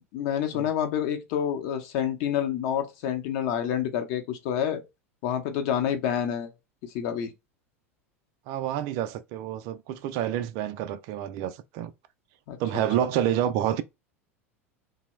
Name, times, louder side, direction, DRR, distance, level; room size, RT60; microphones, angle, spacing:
voice 1, 0.1-4.8 5.2-6.5 6.8-7.3 12.5-13.1, left 9 dB, 55° left, 0.7 m, -28 dB
voice 2, 8.5-11.9 12.6-13.8, right 11 dB, 50° right, 0.4 m, -28 dB
2.9 x 2.0 x 3.0 m
figure-of-eight pair, 80°, 8 cm